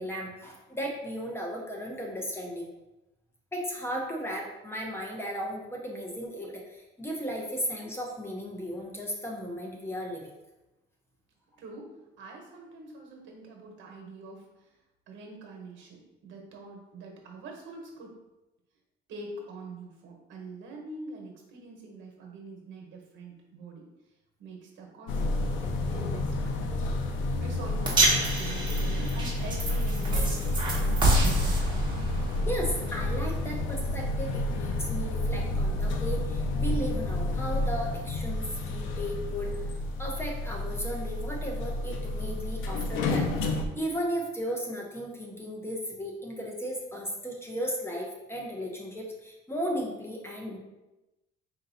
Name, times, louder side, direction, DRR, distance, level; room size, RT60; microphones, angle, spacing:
voice 1, 0.0-2.7 3.5-10.3 32.5-39.5 40.0-50.6, equal, 10° left, -1 dB, 0.8 m, -35 dB
voice 2, 11.6-11.9 12.2-14.4 15.1-18.2 19.1-23.8 24.4-26.8 27.4-31.6, right 2 dB, 70° right, 1 dB, 1.2 m, -44 dB
sound 1, 25.1-43.7, left 2 dB, 80° left, 0.6 m, -30 dB
sound 2, 27.8-34.2, right 2 dB, 25° right, 1.3 m, -29 dB
4.5 x 2.7 x 4.0 m, 0.99 s
cardioid pair, 135°, 20 cm